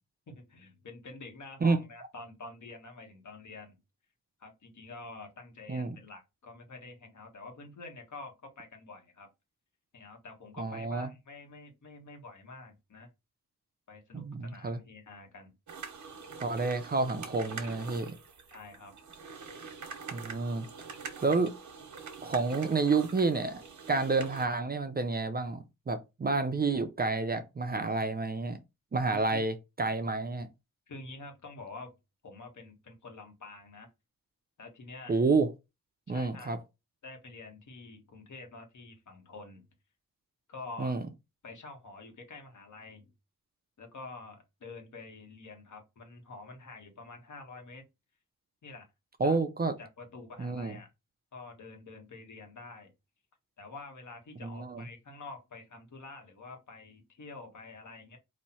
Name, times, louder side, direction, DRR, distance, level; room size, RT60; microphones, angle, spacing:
voice 1, 0.3-3.8 4.4-9.3 9.9-13.1 13.9-15.5 18.5-19.0 29.1-29.4 30.9-31.9 32.2-33.9 34.6-35.2 36.1-36.6 37.0-39.6 40.5-41.0 41.4-43.1 43.8-47.8 48.6-48.9 49.2-49.4 49.8-50.9 51.3-52.9 53.6-58.2, left 3 dB, 60° left, 1.5 m, -47 dB
voice 2, 10.6-11.1 14.1-14.8 16.4-18.2 20.1-20.7 21.2-21.6 22.2-23.6 23.9-28.6 28.9-30.5 35.1-35.5 36.1-36.6 40.8-41.0 49.2-49.7 50.4-50.8 54.4-54.8, right 3 dB, 30° right, 0.5 m, -29 dB
sound 1, 15.7-24.5, right 5 dB, 60° right, 1.1 m, -45 dB
4.3 x 2.7 x 4.3 m
wide cardioid pair, 105°, 34 cm